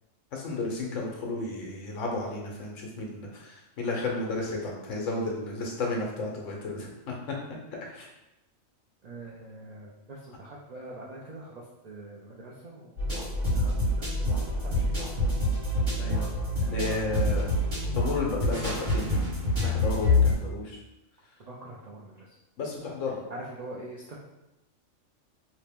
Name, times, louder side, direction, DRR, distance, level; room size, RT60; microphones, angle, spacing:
voice 1, 0.3-7.3 7.8-8.1 16.0-16.3 16.7-17.4 17.9-19.3 19.6-20.8 22.6-23.2, left 3 dB, 70° left, -1 dB, 1.1 m, -33 dB
voice 2, 9.0-15.5 16.6-17.1 17.5-17.6 21.4-22.4 23.3-24.2, right 2 dB, 90° right, -4 dB, 0.3 m, -45 dB
sound 1, 13.0-20.3, left 1 dB, 60° right, 1.8 m, -26 dB
2.9 x 2.8 x 3.5 m, 0.95 s
omnidirectional pair, 1.3 m